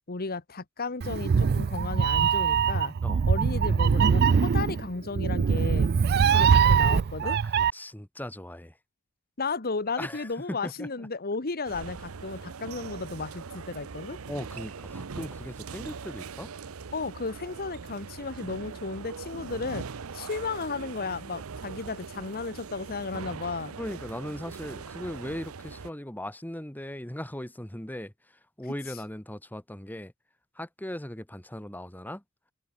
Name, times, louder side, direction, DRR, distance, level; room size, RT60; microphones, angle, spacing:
voice 1, 0.1-2.9 3.3-7.4 9.4-14.2 16.9-19.9 20.1-23.8, left 4 dB, 45° left, 1.3 m, -34 dB
Meow, 1.0-7.7, right 6 dB, 50° right, 0.4 m, -22 dB
voice 2, 7.2-8.8 10.0-11.1 14.3-16.5 23.8-30.1 30.5-32.2, left 1 dB, 10° left, 1.6 m, -39 dB
sound 1, 11.6-25.9, right 5 dB, 70° right, 0.7 m, -41 dB
head